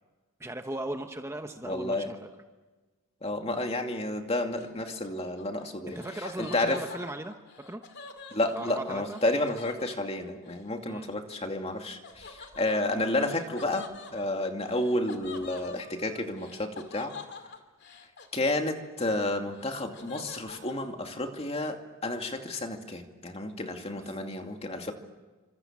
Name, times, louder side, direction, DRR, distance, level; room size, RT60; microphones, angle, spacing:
voice 1, 0.4-2.3 5.9-7.8 8.5-9.2 10.9-11.1 24.0-24.2, right 1 dB, 15° right, 5 dB, 1.0 m, -38 dB
voice 2, 1.6-2.1 3.2-6.0 6.4-6.8 8.3-17.1 18.3-24.9, left 2 dB, 30° left, 4 dB, 2.5 m, -31 dB
Laughter, 4.6-10.6 12.0-19.0 19.3-20.7, left 4 dB, 55° left, 2.4 m, -47 dB
29.0 x 26.0 x 7.5 m, 1.3 s
head